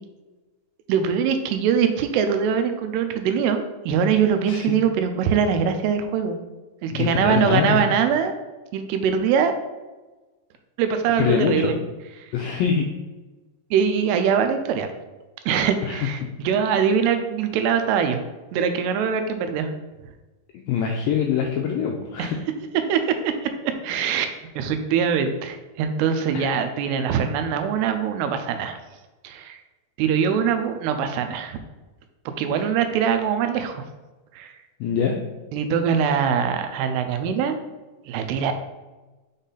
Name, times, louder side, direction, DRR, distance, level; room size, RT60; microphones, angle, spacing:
voice 1, 0.9-6.4 6.8-8.3 8.7-9.5 10.8-11.8 12.2-12.3 13.7-14.9 15.5-18.2 18.5-19.7 22.2-22.3 22.9-23.3 23.6-28.8 29.2-29.6 30.0-31.6 32.4-33.8 34.3-34.5 35.5-37.6 38.1-38.5, right 7 dB, 90° right, 7 dB, 2.7 m, -22 dB
voice 2, 6.9-7.8 11.2-11.8 12.3-12.9 15.8-16.0 20.7-22.4 26.3-26.5 32.5-32.6 34.8-35.2, left 7 dB, 90° left, 1 dB, 2.0 m, -24 dB
6.1 x 4.1 x 3.8 m, 1.2 s
omnidirectional pair, 4.6 m